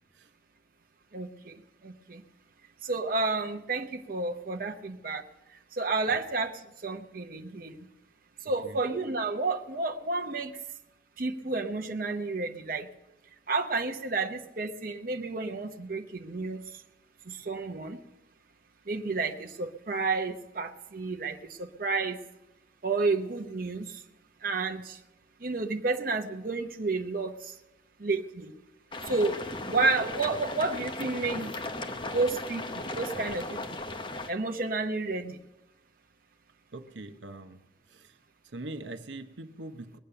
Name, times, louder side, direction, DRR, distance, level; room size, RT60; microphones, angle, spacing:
voice 1, 1.1-1.5 1.8-2.2 2.8-5.2 5.8-6.5 6.8-7.8 8.4-10.5 11.2-12.9 13.5-16.6 17.3-18.0 18.9-22.2 22.8-24.0 24.4-25.0 25.4-27.3 28.0-28.5 29.1-29.4 29.6-31.5 32.1-33.8 34.3-35.4, right 3 dB, 50° right, 4 dB, 0.8 m, -31 dB
sound 1, 28.9-34.3, left 2 dB, 25° left, 0.9 m, -36 dB
voice 2, 36.7-38.2 38.5-40.0, right 2 dB, 80° right, 8 dB, 0.8 m, -43 dB
20.5 x 8.7 x 6.7 m, 0.94 s
head